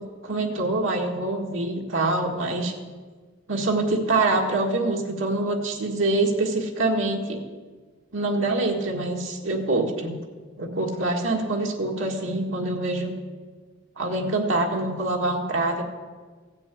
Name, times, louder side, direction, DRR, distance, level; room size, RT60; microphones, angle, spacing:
voice 1, 0.0-2.7 3.5-7.4 8.1-10.2 10.6-13.1 14.0-15.8, right 2 dB, 85° right, 0 dB, 1.8 m, -25 dB
15.5 x 6.9 x 8.4 m, 1.4 s
head